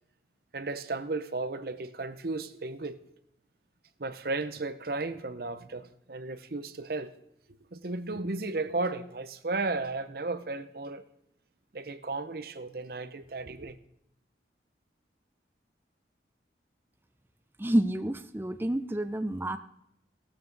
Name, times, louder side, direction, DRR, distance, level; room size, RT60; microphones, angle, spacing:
voice 1, 0.5-3.0 4.0-7.1 7.7-11.0 11.7-13.8, right 3 dB, 55° right, 0.8 m, -34 dB
voice 2, 17.6-19.6, right 1 dB, 10° right, 0.5 m, -28 dB
16.0 x 13.0 x 4.0 m
head